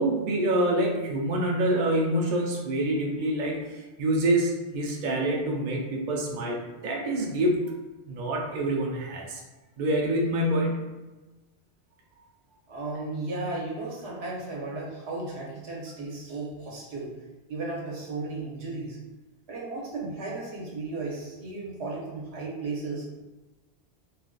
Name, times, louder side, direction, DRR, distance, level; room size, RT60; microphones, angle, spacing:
voice 1, 0.0-7.6 8.1-9.4 9.8-10.8, right 1 dB, 55° right, -1 dB, 0.6 m, -26 dB
voice 2, 12.7-17.1 17.5-19.0 19.5-23.0, right 3 dB, 80° right, -4 dB, 1.1 m, -35 dB
2.5 x 2.2 x 3.7 m, 1.1 s
omnidirectional pair, 1.1 m